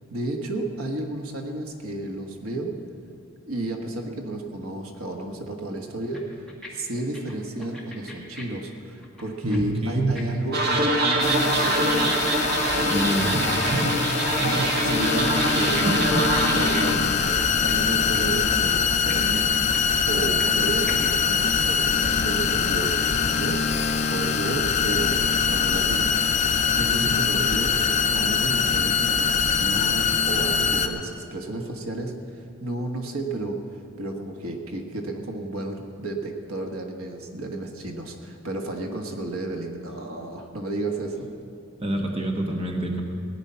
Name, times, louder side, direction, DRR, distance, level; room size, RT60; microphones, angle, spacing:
voice 1, 0.1-2.7 3.5-12.2 12.7-13.8 14.4-16.1 16.5-19.5 20.1-26.1 26.7-41.3, right 2 dB, 75° right, 2 dB, 1.4 m, -32 dB
sound 1, 6.1-6.7 7.0-9.6 9.8-13.2 13.5-14.4 14.6-15.8 16.1-17.9 18.1-18.3 18.6-18.7 19.1-20.6 20.9-21.0, left 2 dB, ahead, 1.8 m, -43 dB
voice 2, 9.4-10.3 12.9-14.0 14.4-14.7 27.0-27.2 41.8-43.0, right 1 dB, 25° right, 1 dB, 1.1 m, -27 dB
sound 2, 10.5-16.9, right 1 dB, 45° right, 1.5 m, -24 dB
sound 3, 11.2-30.9, left 6 dB, 30° left, 0.7 m, -23 dB
17.0 x 10.0 x 5.6 m, 2.4 s
head